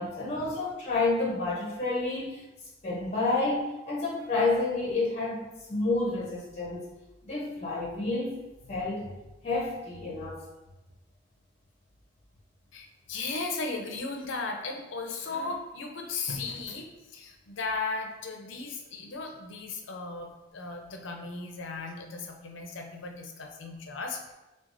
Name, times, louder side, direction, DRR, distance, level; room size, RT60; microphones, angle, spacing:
voice 1, 0.0-2.5 2.8-6.9 7.2-9.1 9.4-10.4, left 3 dB, 35° left, -3 dB, 0.7 m, -30 dB
voice 2, 12.7-24.3, left 3 dB, 75° left, 3 dB, 0.6 m, -36 dB
5.8 x 2.3 x 2.5 m, 1.0 s
head